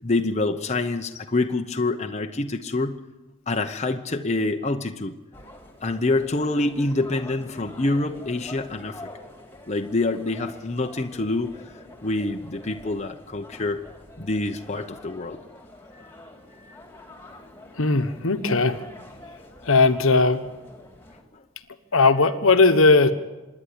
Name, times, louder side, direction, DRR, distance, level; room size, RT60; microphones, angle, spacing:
voice 1, 0.0-3.0 3.5-5.2 5.8-9.1 9.7-11.6 12.0-13.9 14.2-15.4 15.9-16.1 16.6-16.8 21.3-21.4, left 2 dB, 30° left, 5 dB, 0.8 m, -26 dB
sound 1, 5.3-21.2, left 1 dB, 10° left, 2.4 m, -46 dB
voice 2, 17.8-18.8 19.6-20.4 21.9-23.1, left 3 dB, 65° left, 10 dB, 1.2 m, -18 dB
26.0 x 11.0 x 9.9 m, 1.2 s
head